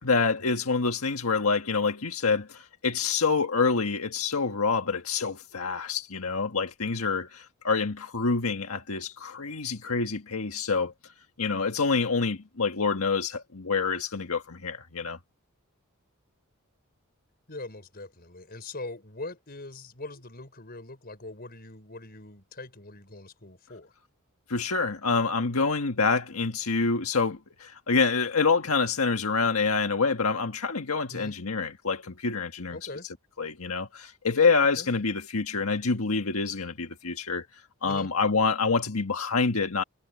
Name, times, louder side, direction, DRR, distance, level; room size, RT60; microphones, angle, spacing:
voice 1, 0.0-10.9 11.4-15.2 24.5-32.8 33.4-37.4 37.8-39.8, left 4 dB, 90° left, 1.6 m, -27 dB
voice 2, 17.5-23.9 31.1-31.3 32.7-33.1 34.7-34.9 37.9-38.1, left 2 dB, 45° left, 5.6 m, -42 dB
head